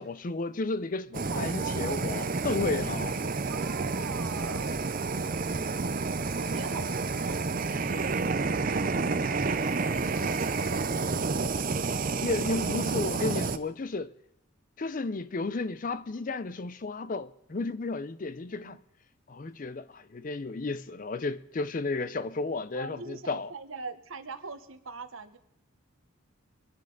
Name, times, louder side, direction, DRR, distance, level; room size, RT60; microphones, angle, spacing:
voice 1, 0.0-3.2 5.6-5.7 12.2-14.1 14.8-18.8 19.3-23.5, left 3 dB, 40° left, 0.5 m, -33 dB
Fire, 1.1-13.6, right 4 dB, 40° right, 0.6 m, -30 dB
voice 2, 1.3-2.1 3.5-4.7 5.3-7.5 7.8-11.7 18.5-18.8 22.7-25.4, right 4 dB, 70° right, 1.0 m, -43 dB
24.5 x 10.5 x 3.9 m
head